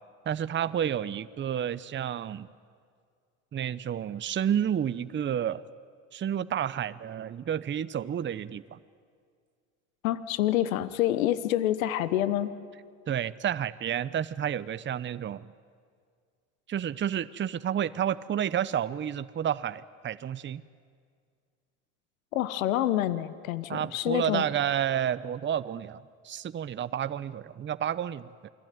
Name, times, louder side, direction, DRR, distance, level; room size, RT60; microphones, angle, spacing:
voice 1, 0.3-2.5 3.5-5.6 6.1-8.8 13.1-15.5 16.7-20.6 23.7-28.5, right 9 dB, 30° right, 15 dB, 0.9 m, -30 dB
voice 2, 10.0-12.5 22.3-24.4, left 13 dB, 80° left, 15 dB, 1.2 m, -27 dB
28.5 x 21.0 x 9.4 m, 2.1 s
hypercardioid pair, 75°, 41 cm